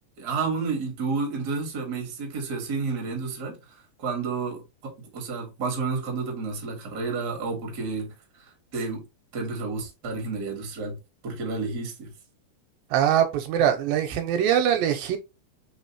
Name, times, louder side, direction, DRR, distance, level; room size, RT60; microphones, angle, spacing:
voice 1, 0.2-8.1 8.4-9.0 9.3-11.0 11.2-12.1, right 4 dB, 40° right, 1.4 m, -31 dB
voice 2, 12.9-15.2, right 9 dB, 85° right, 2.4 m, -22 dB
4.9 x 3.8 x 2.9 m
omnidirectional pair, 4.2 m